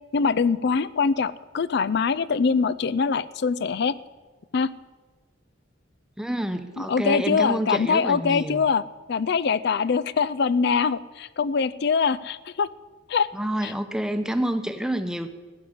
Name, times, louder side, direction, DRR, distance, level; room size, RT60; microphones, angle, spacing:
voice 1, 0.1-3.9 4.5-4.7 6.8-8.8 9.1-12.7 13.1-13.3 13.6-13.7, left 5 dB, 55° left, 19 dB, 0.4 m, -23 dB
voice 2, 6.2-8.6 13.3-15.3, right 1 dB, 5° right, 9 dB, 0.8 m, -28 dB
14.5 x 7.8 x 9.9 m, 1.3 s
head